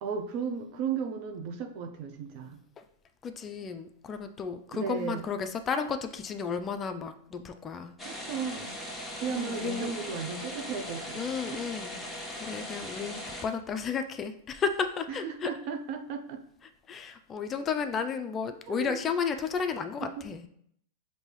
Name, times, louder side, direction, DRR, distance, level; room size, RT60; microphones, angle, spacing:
voice 1, 0.0-2.6 4.7-5.2 8.0-8.8 9.1-11.2 11.5-11.6 15.1-16.4 18.7-19.0 20.0-20.1, right 6 dB, 55° right, 5 dB, 0.6 m, -35 dB
voice 2, 3.2-7.9 9.3-9.9 11.1-12.0 12.4-15.5 16.9-20.5, left 6 dB, 25° left, 8 dB, 0.4 m, -33 dB
sound 1, 8.0-13.4, left 1 dB, 5° left, 1.0 m, -39 dB
5.1 x 2.7 x 3.2 m, 0.67 s
hypercardioid pair, 110°, 0 cm